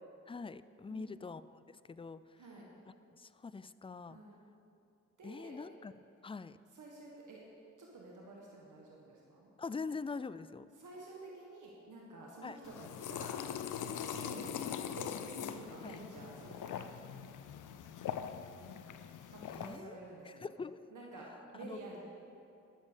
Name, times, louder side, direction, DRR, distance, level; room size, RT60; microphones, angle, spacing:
voice 1, 0.3-2.2 3.1-4.2 5.2-5.9 6.2-6.6 9.6-10.7 12.4-12.6 15.8-16.0 19.5-20.0 20.2-20.8 21.5-21.8, left 4 dB, 20° left, 15 dB, 0.3 m, -44 dB
voice 2, 0.9-1.2 2.4-2.6 4.1-4.4 5.2-5.6 6.7-7.4 7.8-9.5 10.8-13.3 13.8-16.9 19.3-20.5 20.9-22.0, right 2 dB, 80° right, -3 dB, 1.3 m, -50 dB
sound 1, 12.6-19.8, left 9 dB, 90° left, 0.5 m, -42 dB
12.0 x 7.3 x 5.1 m, 2.6 s
cardioid pair, 45°, 30 cm